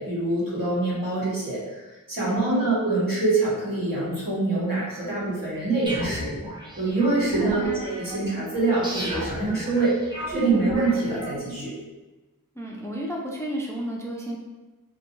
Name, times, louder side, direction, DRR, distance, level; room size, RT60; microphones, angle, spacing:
voice 1, 0.0-1.8 2.1-6.3 6.8-10.0 10.3-11.8, right 3 dB, 65° right, -7 dB, 1.2 m, -25 dB
voice 2, 2.3-2.7 7.4-7.8 12.6-14.4, equal, 10° left, -2 dB, 0.4 m, -32 dB
sound 1, 5.9-11.7, equal, 10° right, 0.7 m, -33 dB
2.6 x 2.5 x 2.7 m, 1.2 s
wide cardioid pair, 45°, 36 cm